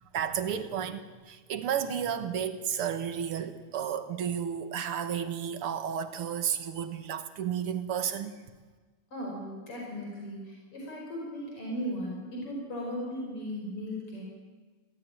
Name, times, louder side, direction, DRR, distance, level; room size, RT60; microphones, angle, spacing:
voice 1, 0.1-8.4, right 8 dB, 85° right, 9 dB, 2.3 m, -32 dB
voice 2, 9.1-14.2, equal, 90° left, -2 dB, 6.0 m, -37 dB
22.0 x 16.0 x 9.9 m, 1.4 s
omnidirectional pair, 2.4 m